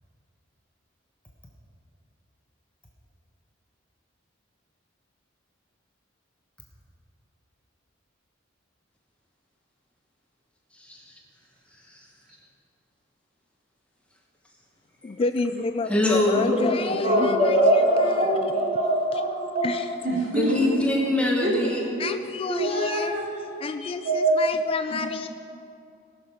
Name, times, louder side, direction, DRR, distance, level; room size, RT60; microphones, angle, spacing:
voice 1, 10.7-11.1 11.9-12.0 15.9-16.5 20.3-21.8, left 1 dB, 5° left, -2 dB, 1.2 m, -24 dB
voice 2, 15.0-18.3 19.6-19.9 22.0-23.2 23.6-25.3, left 3 dB, 30° left, 9 dB, 0.3 m, -29 dB
voice 3, 17.0-19.7 20.0-20.7 21.4-21.6 22.0-22.1 22.5-23.3 24.0-24.5 24.9-25.0, right 1 dB, 40° right, -5 dB, 3.4 m, -23 dB
18.0 x 6.5 x 5.9 m, 2.6 s
head